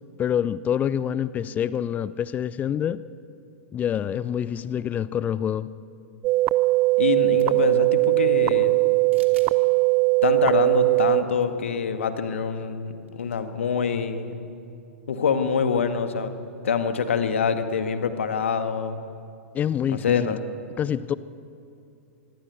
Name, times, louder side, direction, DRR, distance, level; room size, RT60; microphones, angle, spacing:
voice 1, 0.2-3.0 3.7-5.7 19.5-20.4 20.8-21.1, left 9 dB, 20° left, 0.6 m, -26 dB
sound 1, 6.2-11.2, right 24 dB, 30° right, 0.7 m, -20 dB
voice 2, 7.0-8.8 10.2-14.4 15.1-16.3 16.6-19.0 19.9-20.4, left 6 dB, 60° left, 1.9 m, -25 dB
sound 2, 7.2-7.7 9.1-9.6 10.1-10.2 11.3-11.5 11.7-11.8 13.1-13.4, right 6 dB, 65° right, 3.1 m, -49 dB
25.0 x 22.0 x 8.3 m
figure-of-eight pair, 100°, 7 cm